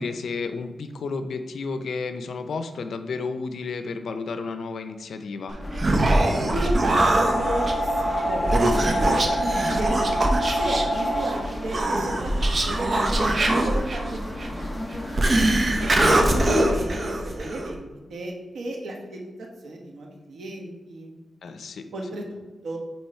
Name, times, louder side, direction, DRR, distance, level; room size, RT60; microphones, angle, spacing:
voice 1, 0.0-5.6 16.0-16.3 21.4-21.8, left 4 dB, 80° left, 8 dB, 0.5 m, -32 dB
Human voice, 5.5-17.7, right 1 dB, 40° right, 0.9 m, -23 dB
sound 1, 5.6-16.7, equal, 15° left, 0.7 m, -29 dB
voice 2, 6.5-10.0 10.5-12.3 12.6-14.2 14.5-14.7 14.9-15.5 15.8-19.3 19.6-21.1 21.9-22.8, right 1 dB, 90° right, 0 dB, 1.2 m, -34 dB
9.2 x 3.1 x 4.3 m, 1.2 s
wide cardioid pair, 105°, 0 cm